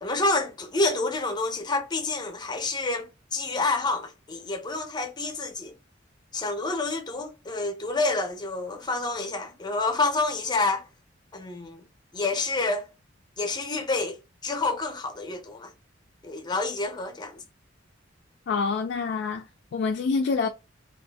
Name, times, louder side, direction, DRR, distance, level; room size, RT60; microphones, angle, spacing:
voice 1, 0.0-5.7 6.3-10.9 11.3-11.8 12.1-12.9 13.4-15.7 16.2-17.4, left 3 dB, 20° left, 0.6 m, -28 dB
voice 2, 18.5-20.5, left 4 dB, 60° left, 0.3 m, -27 dB
2.6 x 2.4 x 3.3 m
head